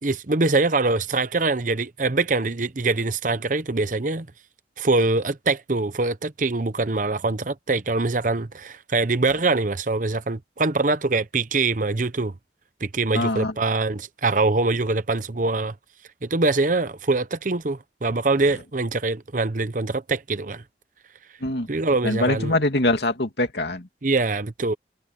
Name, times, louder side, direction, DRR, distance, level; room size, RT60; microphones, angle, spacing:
voice 1, 0.0-4.3 4.8-12.3 12.8-15.7 16.2-20.6 21.7-22.6 24.0-24.7, right 3 dB, 45° right, 0.9 m, -23 dB
voice 2, 13.1-13.5 21.4-21.7 22.0-23.9, left 2 dB, 70° left, 2.7 m, -23 dB
head